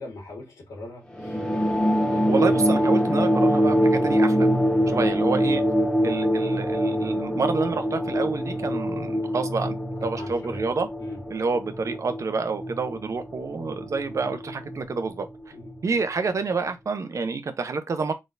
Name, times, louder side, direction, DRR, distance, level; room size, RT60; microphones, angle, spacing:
voice 1, 0.0-1.4 4.9-5.0 10.1-10.6 11.0-11.2 15.5-15.7, left 2 dB, 90° left, 1.6 m, -40 dB
sound 1, 1.1-16.0, equal, 15° left, 1.0 m, -24 dB
voice 2, 2.1-4.5 4.9-5.6 6.0-9.8 10.0-10.9 11.3-15.3 15.8-18.1, right 4 dB, 55° right, 0.8 m, -28 dB
4.1 x 3.6 x 2.6 m
wide cardioid pair, 125°, 6 cm